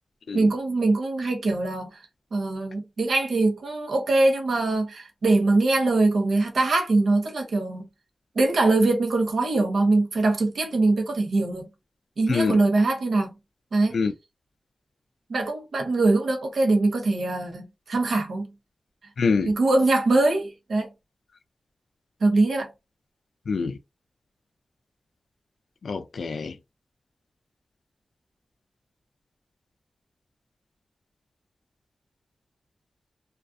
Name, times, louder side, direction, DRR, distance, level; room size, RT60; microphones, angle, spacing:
voice 1, 0.3-1.9 2.3-7.8 8.4-11.7 12.2-13.3 13.7-13.9 15.3-18.5 19.4-20.9 22.2-22.7, right 2 dB, 80° right, 0.7 m, -22 dB
voice 2, 19.2-19.5 23.5-23.8 25.8-26.5, left 4 dB, 80° left, 0.3 m, -25 dB
2.3 x 2.3 x 2.5 m
wide cardioid pair, 70°, 0 cm